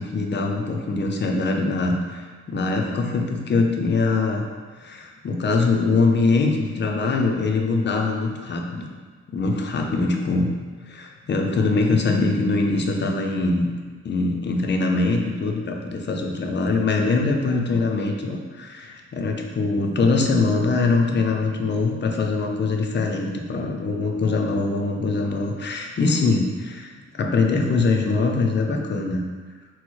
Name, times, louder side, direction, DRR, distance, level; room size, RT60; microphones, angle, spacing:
voice 1, 0.0-4.4 4.8-8.9 9.3-10.5 10.8-13.7 14.0-29.2, left 3 dB, 40° left, 2 dB, 0.4 m, -23 dB
4.2 x 2.1 x 4.5 m, 1.5 s
wide cardioid pair, 160°, 30 cm